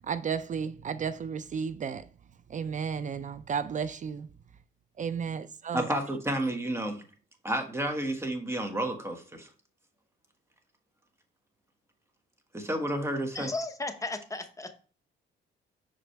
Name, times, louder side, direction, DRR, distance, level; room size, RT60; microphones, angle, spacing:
voice 1, 0.0-2.1 2.5-4.3 5.0-6.0, right 6 dB, 40° right, 0.4 m, -33 dB
voice 2, 5.7-7.0 7.4-9.5 12.5-13.5, right 1 dB, 15° right, 1.5 m, -31 dB
voice 3, 13.3-14.7, left 2 dB, 15° left, 1.0 m, -35 dB
6.2 x 5.0 x 3.3 m
cardioid pair, 90°, 20 cm